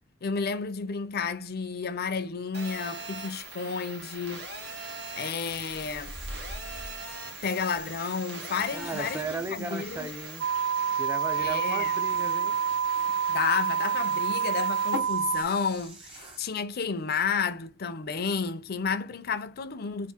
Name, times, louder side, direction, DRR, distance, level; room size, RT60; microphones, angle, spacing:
voice 1, 0.2-4.5 5.2-6.1 7.4-10.1 11.4-12.0 13.1-20.1, left 5 dB, 50° left, 0.5 m, -31 dB
Telephone, 2.5-15.0, right 1 dB, 55° right, 1.4 m, -41 dB
sound 1, 4.4-16.5, right 1 dB, 30° right, 1.4 m, -48 dB
voice 2, 8.7-10.4 11.0-12.6, right 2 dB, 10° right, 0.5 m, -35 dB
sound 2, 10.4-15.4, right 7 dB, 75° right, 0.3 m, -27 dB
3.6 x 2.5 x 4.3 m
head